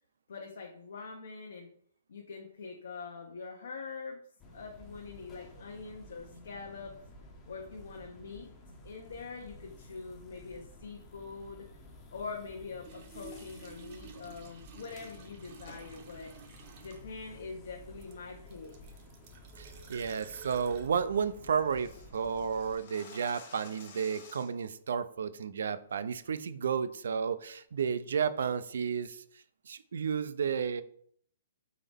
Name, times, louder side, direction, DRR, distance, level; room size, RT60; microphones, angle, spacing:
voice 1, 0.3-1.7 2.1-4.2 4.5-6.9 7.5-8.5 8.8-11.6 12.1-16.3 16.8-18.7, left 4 dB, 75° left, 1 dB, 0.8 m, -44 dB
sound 1, 4.4-22.7, left 1 dB, 15° left, 0.6 m, -53 dB
sound 2, 12.8-17.3 18.0-20.9, right 5 dB, 35° right, 0.7 m, -53 dB
sound 3, 13.3-13.6 15.6-15.9 16.3-16.4 17.0-17.2 17.6-17.9 18.3-18.6 18.9-19.0 19.4-19.7 20.0-20.1 20.4-20.5 20.7-20.8 21.1-24.7, left 4 dB, 45° left, 1.2 m, -53 dB
voice 2, 19.6-29.2 29.7-30.8, right 6 dB, 75° right, 14 dB, 0.3 m, -32 dB
4.0 x 3.8 x 3.4 m, 0.62 s
hypercardioid pair, 165°, 0 cm